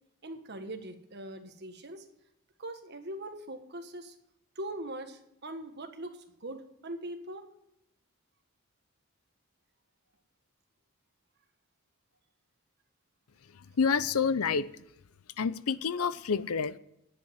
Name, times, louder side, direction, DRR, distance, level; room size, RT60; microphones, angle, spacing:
voice 1, 0.2-2.1 2.6-4.1 4.5-7.4, right 1 dB, 50° right, 6 dB, 1.5 m, -41 dB
voice 2, 13.8-14.7 15.4-16.8, left 5 dB, 80° left, 16 dB, 0.6 m, -28 dB
10.0 x 8.3 x 9.5 m, 0.82 s
head